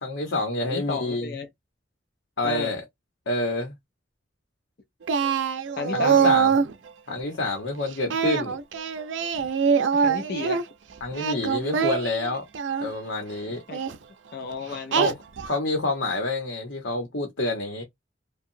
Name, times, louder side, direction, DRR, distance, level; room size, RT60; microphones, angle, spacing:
voice 1, 0.0-1.3 2.4-2.8 3.3-3.7 5.9-6.5 7.1-8.6 11.0-12.5 12.8-13.6 14.9-15.2 15.4-17.8, left 2 dB, 85° left, 0.9 m, -28 dB
voice 2, 0.6-1.5 2.4-2.7 5.8-6.4 9.9-10.6 13.7-13.8 14.3-15.2, left 3 dB, 55° left, 0.5 m, -32 dB
Singing, 5.1-6.7 8.1-10.6 11.1-12.9 13.7-14.0 14.9-15.6, right 6 dB, 85° right, 0.5 m, -24 dB
2.8 x 2.2 x 2.6 m
head